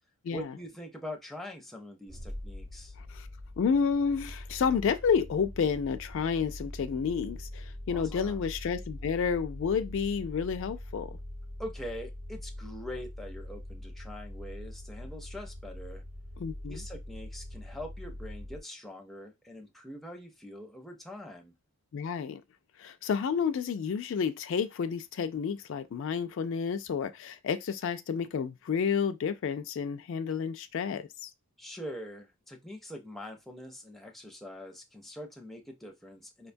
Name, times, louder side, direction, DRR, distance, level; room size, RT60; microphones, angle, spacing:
voice 1, 0.3-2.9 7.9-8.4 11.6-16.0 16.7-21.5 31.6-36.5, equal, ahead, 0.5 m, -43 dB
sound 1, 2.1-18.6, left 1 dB, 30° right, 0.8 m, -43 dB
voice 2, 3.6-11.2 16.4-16.8 21.9-22.4 22.8-31.3, left 6 dB, 60° left, 0.3 m, -30 dB
5.0 x 2.2 x 2.5 m
head